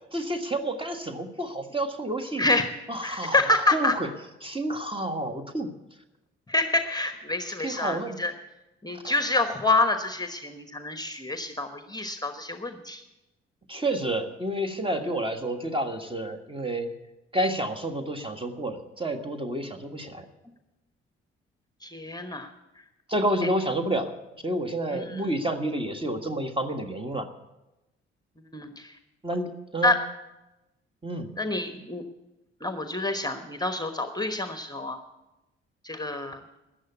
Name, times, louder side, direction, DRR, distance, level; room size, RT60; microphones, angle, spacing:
voice 1, 0.1-2.4 2.9-3.4 3.7-4.1 4.4-5.7 7.6-8.2 9.0-9.1 13.7-16.9 17.3-20.2 23.1-24.1 24.4-27.3 29.2-30.0 31.0-31.3, right 1 dB, 15° right, 6 dB, 1.6 m, -29 dB
voice 2, 2.4-2.7 3.0-3.9 6.5-8.3 8.8-13.0 15.0-15.1 21.8-22.5 23.4-23.5 24.9-25.2 28.5-28.9 29.8-30.0 31.4-32.0 32.6-35.0 35.8-36.4, left 2 dB, 15° left, 8 dB, 1.1 m, -27 dB
13.5 x 9.1 x 8.2 m, 0.99 s
figure-of-eight pair, 40°, 31 cm